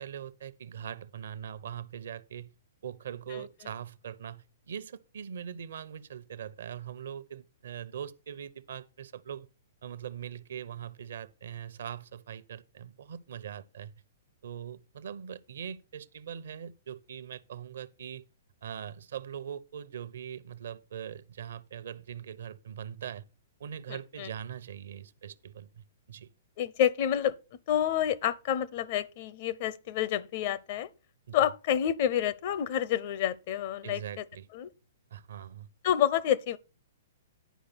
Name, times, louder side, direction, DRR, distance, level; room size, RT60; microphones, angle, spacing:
voice 1, 0.0-2.5 2.8-9.5 9.8-13.9 14.4-18.2 18.6-23.3 23.6-26.3 31.3-31.5 33.8-34.5 35.1-35.7, right 8 dB, 70° right, 0.8 m, -41 dB
voice 2, 23.9-24.3 26.6-27.3 27.7-30.9 31.3-34.0 34.5-34.7 35.8-36.6, left 10 dB, 50° left, 0.8 m, -28 dB
10.0 x 5.0 x 6.0 m
hypercardioid pair, 130°, 0 cm